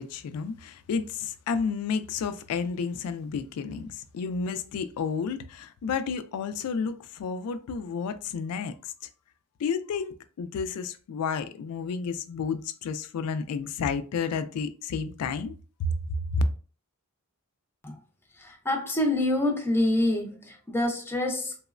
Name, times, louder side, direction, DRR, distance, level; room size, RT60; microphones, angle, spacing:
voice 1, 0.0-8.9 9.6-15.9 16.3-16.4, left 5 dB, 80° left, 0.3 m, -31 dB
voice 2, 18.3-21.6, left 1 dB, 10° left, 0.5 m, -26 dB
3.0 x 2.0 x 2.4 m
head